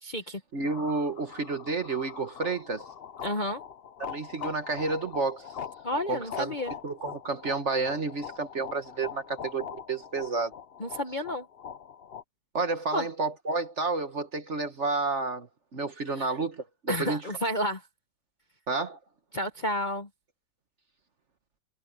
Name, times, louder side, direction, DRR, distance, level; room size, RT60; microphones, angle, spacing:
voice 1, 0.0-0.4 3.2-3.6 5.8-6.7 10.8-11.4 12.9-13.1 16.2-16.3 16.9-17.8 19.3-20.1, left 1 dB, 30° left, 1.0 m, -31 dB
voice 2, 0.5-2.9 4.0-5.5 6.1-6.5 6.8-10.5 12.5-17.2 18.7-19.0, right 3 dB, 40° right, 1.4 m, -30 dB
sound 1, 0.7-12.2, left 8 dB, 65° left, 0.5 m, -42 dB
omnidirectional pair, 2.0 m